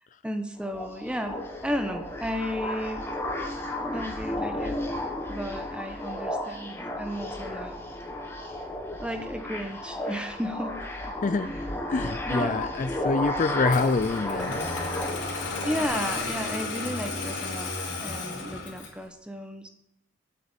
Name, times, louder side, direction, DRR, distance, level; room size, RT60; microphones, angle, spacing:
voice 1, 0.2-1.4 1.6-3.1 3.9-4.8 5.3-7.8 9.0-10.8 11.0-11.7 12.2-13.1 15.6-19.7, equal, 5° right, 6 dB, 1.0 m, -34 dB
sound 1, 0.6-15.9, left 1 dB, 10° left, 1.3 m, -33 dB
voice 2, 11.9-14.6, left 4 dB, 40° left, 12 dB, 0.4 m, -26 dB
Engine starting, 13.6-19.0, left 3 dB, 80° left, 2.9 m, -33 dB
8.5 x 8.1 x 8.9 m, 0.80 s
head